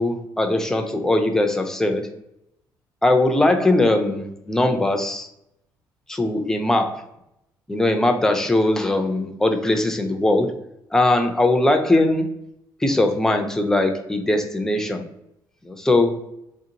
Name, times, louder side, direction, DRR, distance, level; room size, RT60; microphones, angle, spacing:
voice 1, 0.0-2.1 3.0-5.3 6.1-7.0 7.7-10.5 10.9-12.3 12.8-15.0 15.6-16.2, left 2 dB, 5° left, 5 dB, 0.4 m, -20 dB
3.7 x 2.5 x 2.8 m, 0.81 s
cardioid pair, 160°, 8 cm